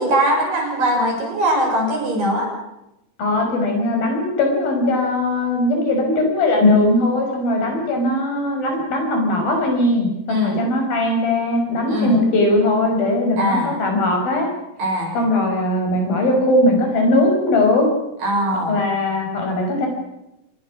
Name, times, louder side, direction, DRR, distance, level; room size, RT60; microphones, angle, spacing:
voice 1, 0.0-2.5 10.3-10.6 11.9-12.2 13.4-13.7 14.8-15.1 18.2-18.8, equal, 65° right, 0 dB, 8.3 m, -21 dB
voice 2, 3.2-14.5 15.1-17.9 18.7-19.9, left 1 dB, 80° left, 2 dB, 7.4 m, -19 dB
27.0 x 20.5 x 6.3 m, 0.87 s
omnidirectional pair, 4.1 m